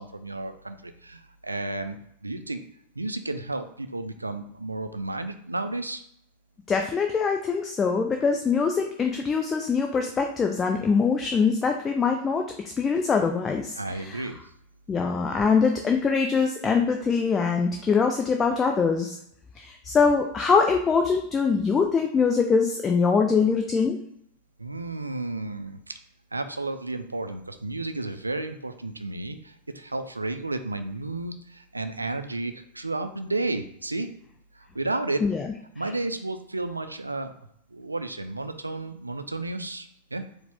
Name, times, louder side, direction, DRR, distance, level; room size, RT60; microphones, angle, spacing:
voice 1, 0.0-2.0 2.2-2.6 3.0-6.0 13.8-14.4 24.6-25.9 26.3-34.1 34.5-35.2 35.8-37.3 37.7-40.2, right 2 dB, 80° right, 8 dB, 0.3 m, -32 dB
voice 2, 6.7-12.5 12.8-14.3 14.9-19.2 19.6-24.0 35.2-35.5, left 5 dB, 20° left, 3 dB, 0.3 m, -23 dB
4.6 x 2.1 x 3.5 m, 0.70 s
figure-of-eight pair, 90°, 0 cm